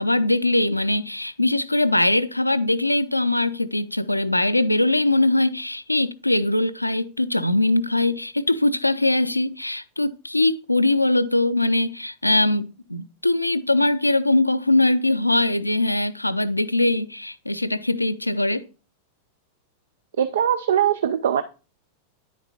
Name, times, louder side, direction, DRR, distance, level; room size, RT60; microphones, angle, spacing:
voice 1, 0.0-18.6, left 2 dB, 85° left, 0.4 m, -21 dB
voice 2, 20.2-21.4, right 9 dB, 60° right, 0.4 m, -21 dB
10.0 x 8.9 x 2.9 m
figure-of-eight pair, 90°, 0 cm